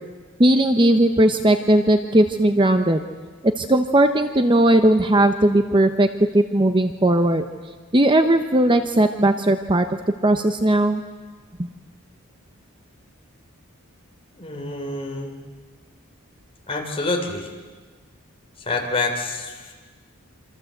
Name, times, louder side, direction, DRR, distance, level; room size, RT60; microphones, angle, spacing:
voice 1, 0.4-3.0 3.4-6.1 6.3-7.4 7.9-9.9 10.2-11.0 11.6-11.7, right 1 dB, 20° right, 7 dB, 0.9 m, -17 dB
voice 2, 14.3-15.3 16.7-17.5 18.7-19.7, left 3 dB, 25° left, 1 dB, 4.0 m, -27 dB
27.5 x 26.0 x 8.0 m, 1.4 s
head